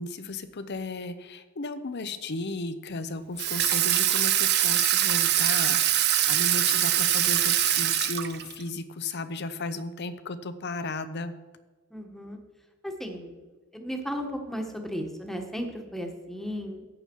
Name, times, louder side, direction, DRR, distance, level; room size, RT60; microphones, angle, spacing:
voice 1, 0.0-6.0 6.3-11.3, left 3 dB, 55° left, 12 dB, 0.8 m, -35 dB
Water tap faucet / Sink (filling or washing), 3.4-8.6, right 12 dB, 55° right, 0.7 m, -23 dB
voice 2, 11.9-12.4 12.8-13.3 13.7-16.8, equal, ahead, 3 dB, 1.3 m, -35 dB
14.0 x 8.7 x 4.6 m, 1.3 s
head